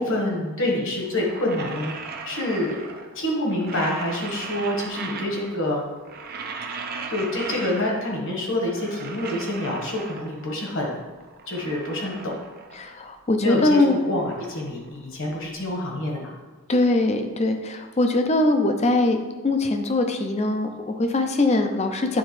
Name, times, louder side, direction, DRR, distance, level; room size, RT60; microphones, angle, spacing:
voice 1, 0.0-1.9 2.2-2.8 3.1-5.8 7.1-11.0 11.5-12.3 13.4-13.8 14.1-16.3, left 1 dB, 60° left, -1 dB, 1.4 m, -27 dB
sound 1, 1.0-3.2 3.5-5.7 6.0-8.2 8.5-10.6 11.0-13.0 13.3-15.5, right 4 dB, 40° right, 0.5 m, -38 dB
voice 2, 12.8-14.0 16.7-22.2, left 2 dB, 30° left, 6 dB, 0.5 m, -22 dB
9.2 x 3.8 x 3.2 m, 1.3 s
head